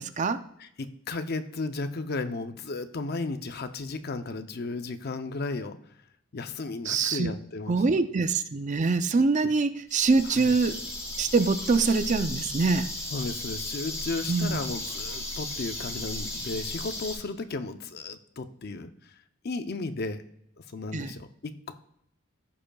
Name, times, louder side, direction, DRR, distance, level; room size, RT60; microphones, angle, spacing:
voice 1, 0.0-0.4 6.9-7.3 7.7-10.8 11.2-12.9 14.3-14.6 20.9-21.1, right 4 dB, 35° right, 11 dB, 0.4 m, -24 dB
voice 2, 0.6-5.8 6.3-7.8 10.3-10.5 13.1-18.9 19.4-20.2 20.6-21.7, left 3 dB, 50° left, 9 dB, 0.6 m, -34 dB
sound 1, 9.9-17.2, left 1 dB, 15° left, 2.1 m, -36 dB
15.0 x 5.1 x 2.3 m, 0.73 s
head